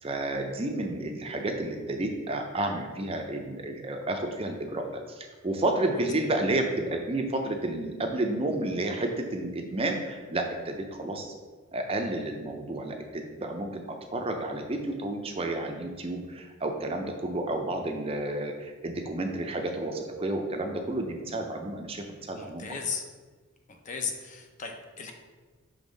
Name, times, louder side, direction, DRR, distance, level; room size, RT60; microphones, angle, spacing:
voice 1, 0.0-11.3 11.7-22.7, right 2 dB, 25° right, 4 dB, 0.4 m, -31 dB
voice 2, 22.3-23.0 23.7-25.1, left 5 dB, 35° left, 4 dB, 0.5 m, -36 dB
5.5 x 3.4 x 5.1 m, 1.4 s
head